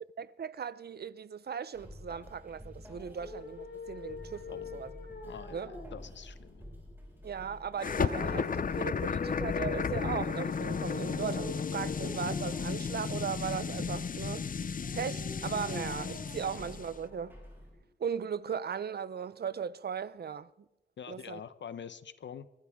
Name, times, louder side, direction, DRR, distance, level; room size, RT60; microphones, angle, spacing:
voice 1, 0.2-4.9 5.5-5.7 7.2-14.5 14.9-17.3 18.0-20.5 21.1-21.4, right 7 dB, 60° right, 0.6 m, -37 dB
sound 1, 1.7-17.7, equal, 10° right, 6.3 m, -50 dB
sound 2, 2.9-17.9, left 4 dB, 70° left, 7.9 m, -46 dB
voice 2, 4.5-4.8 5.2-6.7 21.0-22.5, left 7 dB, 90° left, 0.8 m, -46 dB
sound 3, 7.8-16.9, left 6 dB, 50° left, 0.6 m, -34 dB
23.5 x 14.5 x 3.6 m
wide cardioid pair, 115°, 18 cm